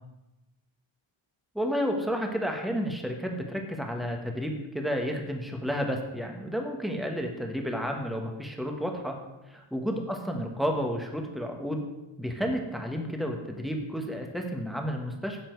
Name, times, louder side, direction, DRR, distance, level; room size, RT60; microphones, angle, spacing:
voice 1, 1.5-9.2 9.5-11.8 12.2-15.4, equal, ahead, 3 dB, 1.4 m, -31 dB
10.5 x 7.3 x 4.6 m, 0.99 s
wide cardioid pair, 120°, 48 cm